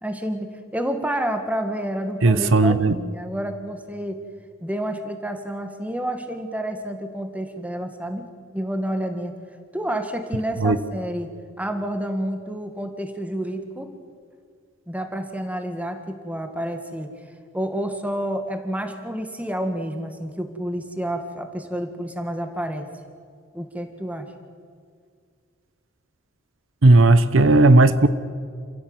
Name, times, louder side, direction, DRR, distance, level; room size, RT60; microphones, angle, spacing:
voice 1, 0.0-4.2 4.6-8.3 8.5-9.3 9.7-11.3 11.6-13.9 14.9-17.1 17.5-22.9 23.5-24.3, right 1 dB, 5° right, 6 dB, 1.8 m, -29 dB
voice 2, 2.2-2.9 10.6-10.8 26.8-28.1, right 2 dB, 75° right, 13 dB, 0.9 m, -15 dB
28.5 x 16.0 x 8.0 m, 2.1 s
head